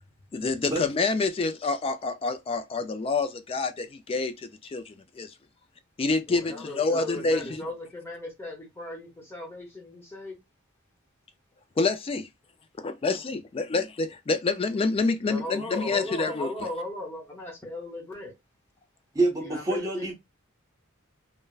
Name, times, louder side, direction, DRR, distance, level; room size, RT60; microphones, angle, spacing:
voice 1, 0.3-5.3 6.0-7.6 11.8-12.3 12.8-16.5, left 3 dB, 25° left, 0.3 m, -27 dB
voice 2, 6.3-10.4 15.2-18.3 19.4-20.1, left 1 dB, 10° left, 0.8 m, -37 dB
voice 3, 19.1-20.1, right 2 dB, 15° right, 1.0 m, -26 dB
3.3 x 2.1 x 2.3 m
head